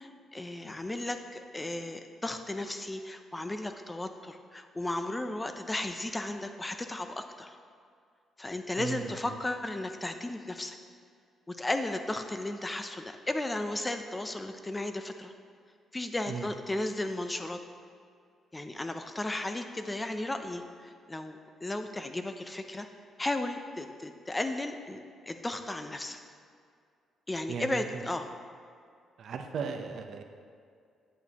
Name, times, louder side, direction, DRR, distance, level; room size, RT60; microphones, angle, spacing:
voice 1, 0.0-7.5 8.4-10.8 11.5-15.3 15.9-17.6 18.5-22.9 23.2-25.0 25.3-26.2 27.3-28.3, left 2 dB, 15° left, 7 dB, 0.6 m, -35 dB
voice 2, 8.8-9.3 16.3-16.5 27.5-27.8 29.2-30.2, right 6 dB, 65° right, 5 dB, 0.7 m, -36 dB
9.1 x 8.4 x 2.9 m, 2.2 s
cardioid pair, 90°, 0 cm